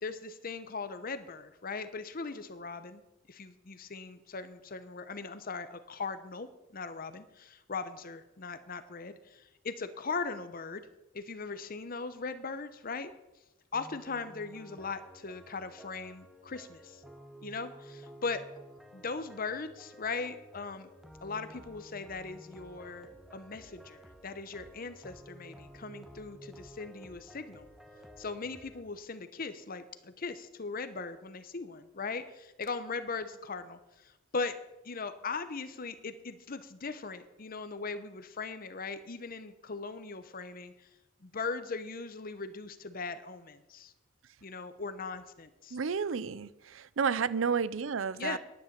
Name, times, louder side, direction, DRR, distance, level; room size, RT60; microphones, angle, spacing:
voice 1, 0.0-3.0 3.3-10.8 11.1-13.1 13.7-17.0 17.4-18.4 18.9-20.9 21.2-27.7 28.2-34.5 34.8-40.7 41.2-43.9 44.4-45.8 48.1-48.4, left 4 dB, 45° left, 0.8 m, -39 dB
sound 1, 13.7-28.8, equal, ahead, 1.1 m, -52 dB
voice 2, 45.7-48.4, right 6 dB, 80° right, 0.5 m, -31 dB
10.5 x 9.5 x 7.4 m
head